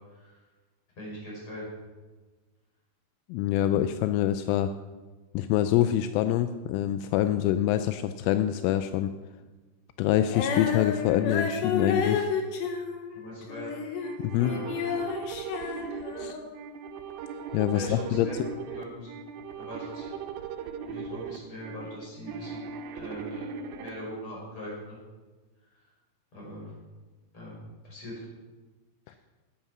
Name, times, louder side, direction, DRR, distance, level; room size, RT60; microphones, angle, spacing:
voice 1, 0.1-0.4 1.0-1.7 13.1-13.7 14.4-14.7 15.6-16.1 17.7-19.1 19.6-20.1 20.8-23.5 23.8-25.0 25.7-25.8 26.3-26.7 27.3-27.5 27.8-28.2 29.1-29.2, equal, 25° left, -4 dB, 5.9 m, -41 dB
voice 2, 3.3-4.7 5.3-9.1 10.0-12.3 14.2-14.6 16.2-16.4 17.5-18.5 29.1-29.2, left 12 dB, 85° left, 10 dB, 3.1 m, -25 dB
Female singing, 10.3-14.1 14.4-16.5, left 6 dB, 70° left, 3.1 m, -31 dB
sound 1, 14.0-23.9, right 6 dB, 90° right, 3.5 m, -38 dB
13.0 x 10.5 x 6.1 m, 1.3 s
omnidirectional pair, 5.8 m